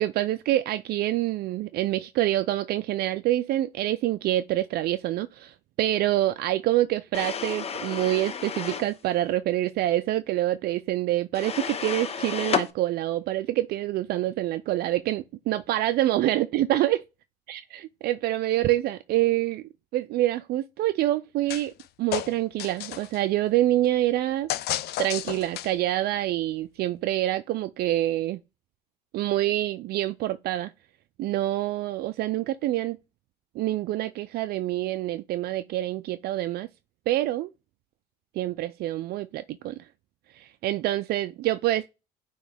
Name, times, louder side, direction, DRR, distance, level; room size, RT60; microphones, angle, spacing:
voice 1, 0.0-17.0 17.5-17.6 18.0-19.6 19.9-21.7 22.0-24.5 25.0-28.4 29.1-30.7 31.2-33.0 33.6-36.7 37.1-37.5 38.4-39.8 40.3-41.9, right 14 dB, 70° right, 0.4 m, -26 dB
sound 1, 7.1-8.9 11.3-12.7, left 7 dB, 35° left, 0.7 m, -31 dB
sound 2, 21.5-21.8 22.1-23.2 24.5-25.9, left 13 dB, 70° left, 0.5 m, -32 dB
8.9 x 3.1 x 3.4 m
cardioid pair, 110°, 17 cm